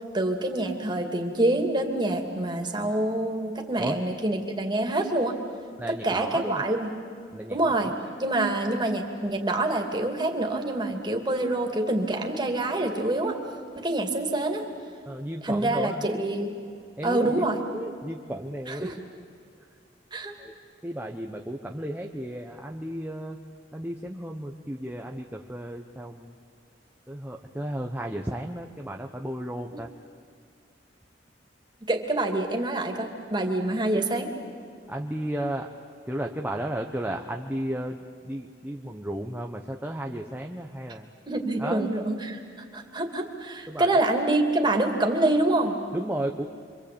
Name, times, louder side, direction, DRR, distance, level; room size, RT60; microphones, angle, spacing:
voice 1, 0.1-5.3 5.9-7.0 7.5-7.9 8.2-13.4 13.7-14.6 15.4-16.5 17.0-17.6 18.7-18.9 20.1-20.3 29.7-29.8 31.9-34.3 41.3-42.4 42.7-45.7, right 2 dB, 25° right, 3 dB, 2.6 m, -26 dB
voice 2, 5.8-6.6 7.3-7.9 15.1-16.1 17.0-17.4 17.7-19.0 20.4-20.5 20.8-23.4 23.7-26.3 27.1-29.9 34.9-35.7 36.1-41.1 41.6-41.8 43.7-43.9 45.9-46.5, right 1 dB, 10° right, 1 dB, 0.9 m, -34 dB
27.0 x 25.0 x 8.7 m, 2.2 s
head